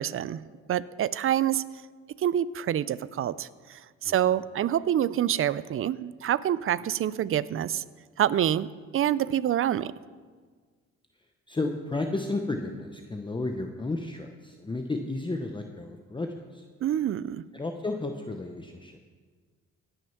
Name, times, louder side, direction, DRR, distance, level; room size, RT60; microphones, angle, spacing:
voice 1, 0.0-1.6 2.2-7.8 8.2-9.9 16.8-17.4, right 11 dB, 45° right, 18 dB, 0.4 m, -27 dB
voice 2, 11.5-16.6 17.5-19.0, left 2 dB, 15° left, 4 dB, 0.8 m, -32 dB
17.0 x 6.4 x 5.8 m, 1.5 s
cardioid pair, 90°, 30 cm